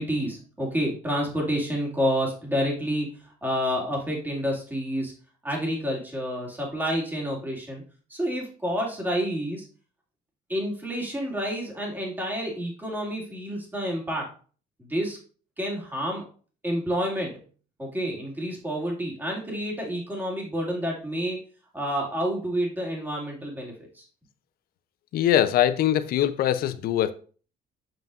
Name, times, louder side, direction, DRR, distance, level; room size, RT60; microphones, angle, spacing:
voice 1, 0.0-5.1 5.4-7.8 8.1-9.7 10.5-14.3 14.8-15.2 15.6-16.2 16.6-17.3 17.8-21.4 21.7-24.0, equal, 10° right, 2.5 m, -29 dB
voice 2, 25.1-27.1, left 11 dB, 60° left, 0.6 m, -22 dB
7.4 x 5.2 x 2.5 m
cardioid pair, 110°, 17 cm